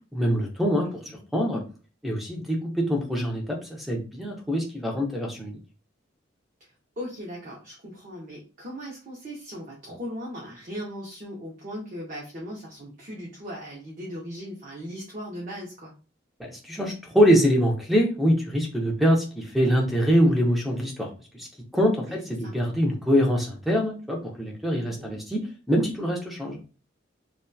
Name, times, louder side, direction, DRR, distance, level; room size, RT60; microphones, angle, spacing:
voice 1, 0.1-0.9 1.3-1.6 2.0-5.6 16.5-21.1 21.3-21.5 21.7-25.4 25.7-26.6, equal, ahead, 0 dB, 0.5 m, -24 dB
voice 2, 0.8-1.2 6.6-15.9 22.1-22.5 24.8-25.2, equal, 40° right, -4 dB, 0.6 m, -38 dB
2.8 x 2.2 x 2.2 m, 0.35 s
head